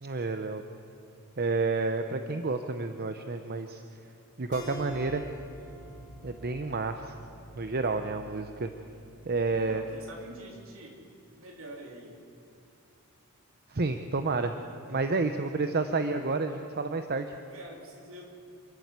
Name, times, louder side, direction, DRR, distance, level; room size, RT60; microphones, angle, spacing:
voice 1, 0.0-0.6 1.4-3.8 4.4-5.2 6.2-7.1 7.6-8.7 9.2-9.8 13.7-14.5 14.9-17.3, right 3 dB, 45° right, 7 dB, 0.8 m, -30 dB
sound 1, 4.4-9.7, equal, 25° left, 6.4 m, -51 dB
Keyboard (musical), 4.5-7.8, right 2 dB, 55° left, 5.3 m, -46 dB
voice 2, 9.5-11.0 11.4-12.2 14.9-15.0 17.5-18.3, right 1 dB, 65° right, 1 dB, 3.4 m, -46 dB
27.5 x 12.0 x 8.3 m, 2.5 s
head